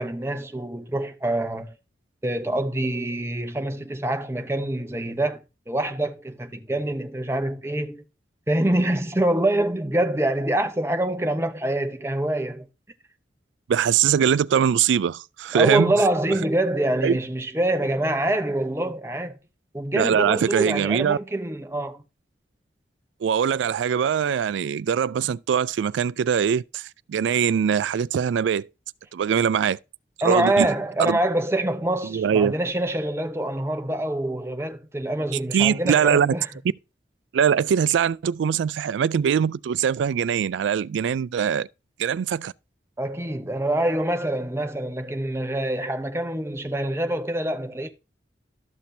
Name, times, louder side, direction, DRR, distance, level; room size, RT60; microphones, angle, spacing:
voice 1, 0.0-1.7 2.2-5.4 5.7-8.0 8.5-12.7 15.5-19.3 19.7-22.0 30.2-36.5 43.0-47.9, right 1 dB, 15° right, 0.7 m, -25 dB
voice 2, 13.7-15.9 17.0-17.2 19.9-21.2 23.2-28.7 29.1-29.8 30.2-30.7 31.0-31.2 32.0-32.5 35.5-36.4 37.3-41.7 42.0-42.5, right 8 dB, 85° right, 0.3 m, -22 dB
12.5 x 6.0 x 2.7 m
head